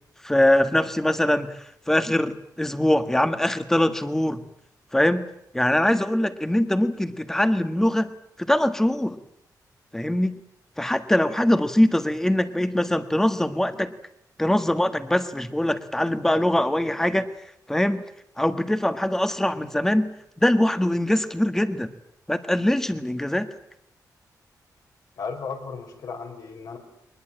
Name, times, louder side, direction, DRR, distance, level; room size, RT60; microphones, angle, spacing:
voice 1, 0.2-1.6 1.9-4.4 4.9-5.3 5.5-8.1 8.4-9.2 9.9-10.4 10.8-13.9 14.4-17.3 17.7-18.0 18.4-20.1 20.4-21.9 22.3-23.5, left 1 dB, 5° left, 10 dB, 1.6 m, -22 dB
voice 2, 25.2-26.8, left 5 dB, 70° left, 2 dB, 5.2 m, -35 dB
23.0 x 21.0 x 8.8 m, 0.76 s
wide cardioid pair, 165°, 7 cm